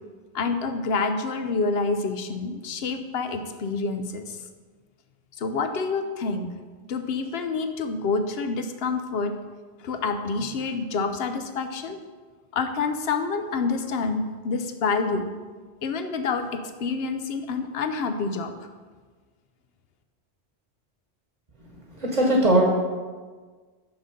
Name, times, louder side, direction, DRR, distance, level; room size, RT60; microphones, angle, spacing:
voice 1, 0.3-4.4 5.4-6.5 6.9-9.3 9.8-12.0 12.5-15.3 15.8-18.5, left 4 dB, 70° left, 8 dB, 0.9 m, -27 dB
voice 2, 21.7-22.6, right 1 dB, 40° right, -1 dB, 1.3 m, -21 dB
6.5 x 6.2 x 5.1 m, 1.4 s
omnidirectional pair, 1.1 m